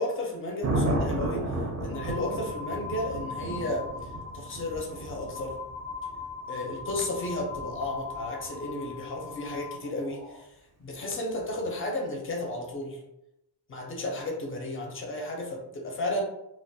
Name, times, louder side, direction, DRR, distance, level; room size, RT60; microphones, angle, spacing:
voice 1, 0.0-5.5 6.5-13.0 13.7-16.2, left 1 dB, 30° left, 0 dB, 0.5 m, -33 dB
Thunder, 0.6-8.7 11.4-11.7, right 1 dB, 40° right, 0.4 m, -34 dB
sound 1, 1.9-10.4, left 5 dB, 85° left, 0.6 m, -40 dB
2.2 x 2.1 x 2.6 m, 0.87 s
cardioid pair, 145°, 42 cm